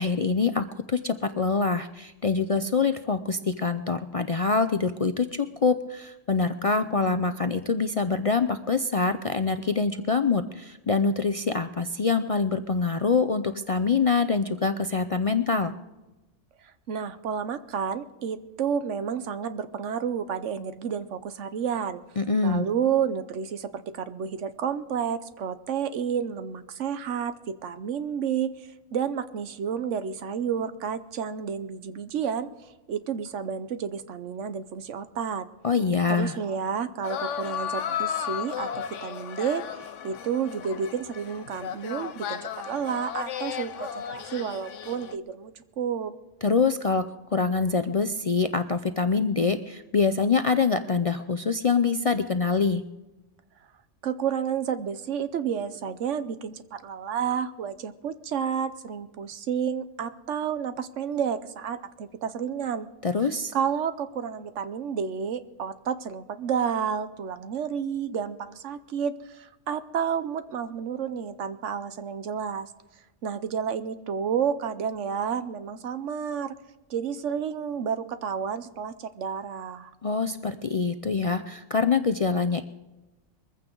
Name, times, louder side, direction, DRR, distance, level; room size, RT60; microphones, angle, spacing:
voice 1, 0.0-15.7 22.2-22.7 35.6-36.4 46.4-47.1 47.3-52.8 63.0-63.5 80.0-82.6, left 4 dB, 45° left, 9 dB, 0.4 m, -25 dB
voice 2, 16.9-22.0 22.4-28.5 28.9-32.5 32.9-35.5 36.1-42.4 42.7-46.1 54.0-62.9 63.2-72.7 73.2-76.6 76.9-79.9, right 7 dB, 80° right, 12 dB, 1.2 m, -30 dB
sound 1, 37.0-45.2, left 8 dB, 85° left, 1.0 m, -34 dB
21.5 x 15.0 x 3.8 m, 1.1 s
omnidirectional pair, 1.2 m